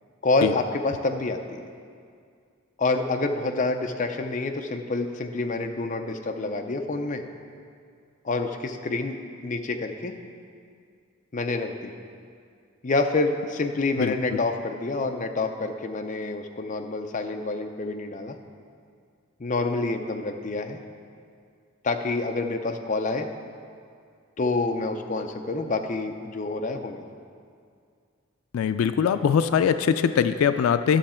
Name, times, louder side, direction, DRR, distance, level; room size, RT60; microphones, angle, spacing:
voice 1, 0.2-1.6 2.8-7.2 8.2-9.2 9.4-10.1 11.3-11.9 12.8-18.4 19.4-20.8 21.8-23.3 24.4-27.0, left 3 dB, 35° left, 5 dB, 0.5 m, -27 dB
voice 2, 28.5-31.0, left 7 dB, 85° left, 11 dB, 0.3 m, -22 dB
11.5 x 6.6 x 4.3 m, 2.2 s
head